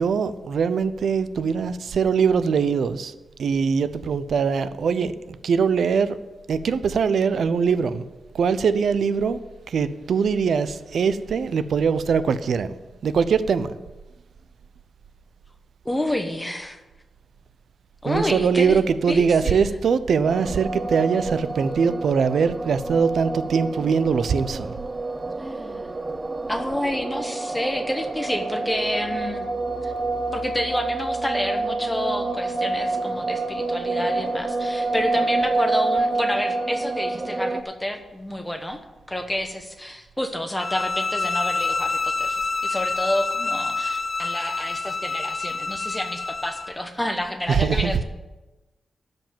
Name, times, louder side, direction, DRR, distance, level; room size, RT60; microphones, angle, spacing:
voice 1, 0.0-6.2 6.5-8.0 8.3-9.4 9.7-12.7 13.0-13.8 18.0-24.8 47.5-47.9, right 6 dB, 65° right, 0.6 m, -22 dB
voice 2, 15.8-16.8 18.0-18.8 19.1-19.6 25.4-25.9 26.5-29.5 29.8-29.9 30.3-38.8 39.1-48.0, left 1 dB, 10° left, 1.0 m, -29 dB
sound 1, 20.2-37.6, right 3 dB, 20° right, 0.6 m, -28 dB
sound 2, 40.6-46.7, left 3 dB, 30° left, 0.3 m, -27 dB
12.5 x 5.3 x 9.0 m
wide cardioid pair, 170°, 0 cm